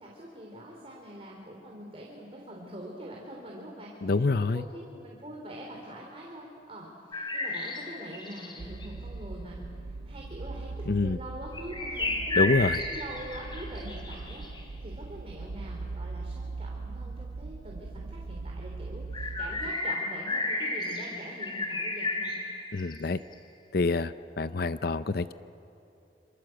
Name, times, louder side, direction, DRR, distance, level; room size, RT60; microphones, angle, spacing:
voice 1, 0.0-4.1 4.5-9.6 9.9-12.5 12.9-22.4, right 1 dB, 35° right, -2 dB, 3.8 m, -44 dB
voice 2, 4.0-4.6 10.9-11.2 12.4-12.8 22.7-23.2 23.7-25.3, left 3 dB, 60° left, 13 dB, 0.6 m, -26 dB
sound 1, 7.1-8.9 11.5-14.6 19.1-23.3, left 2 dB, 25° left, 3.3 m, -33 dB
sound 2, 8.6-19.7, right 3 dB, 75° right, 0.6 m, -40 dB
27.5 x 27.0 x 7.9 m, 2.7 s
head